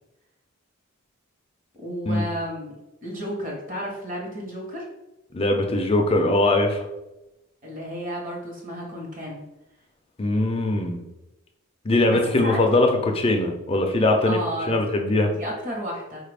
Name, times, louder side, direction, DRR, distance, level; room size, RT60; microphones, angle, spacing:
voice 1, 1.8-2.8 3.0-4.8 7.6-9.4 12.0-12.6 14.2-14.7 15.2-16.2, equal, 35° right, -1 dB, 1.0 m, -32 dB
voice 2, 5.3-6.8 10.2-11.0 11.8-14.4 14.7-15.3, left 2 dB, 25° left, 3 dB, 0.4 m, -21 dB
4.3 x 2.4 x 3.3 m, 0.94 s
head